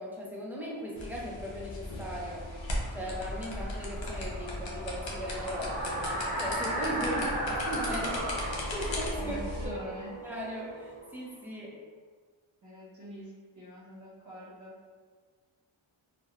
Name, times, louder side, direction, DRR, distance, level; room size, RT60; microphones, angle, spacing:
voice 1, 0.0-2.5 2.9-9.4 9.6-9.8 10.2-11.7, equal, 5° right, -4 dB, 0.5 m, -38 dB
sound 1, 1.0-9.7, left 1 dB, 65° left, 0.7 m, -38 dB
sound 2, 2.3-11.1, right 1 dB, 85° right, 0.8 m, -36 dB
sound 3, 5.1-11.0, right 2 dB, 15° left, 1.0 m, -47 dB
voice 2, 9.2-10.1 12.6-14.7, right 1 dB, 35° right, -8 dB, 0.8 m, -44 dB
3.1 x 2.1 x 2.3 m, 1.5 s
wide cardioid pair, 85°, 49 cm